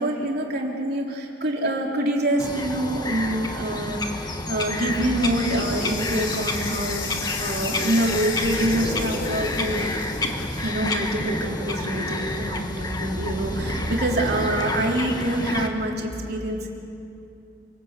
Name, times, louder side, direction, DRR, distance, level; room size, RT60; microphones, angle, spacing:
voice 1, 0.0-9.9 10.6-16.7, right 1 dB, 55° right, 0 dB, 3.6 m, -26 dB
Bird vocalization bird call bird song, 2.4-15.7, left 2 dB, 20° left, 1.6 m, -30 dB
Insect, 5.2-10.7, left 5 dB, 85° left, 3.5 m, -35 dB
sound 1, 8.4-14.6, right 1 dB, 20° right, 7.0 m, -34 dB
29.0 x 19.0 x 8.3 m, 2.6 s
head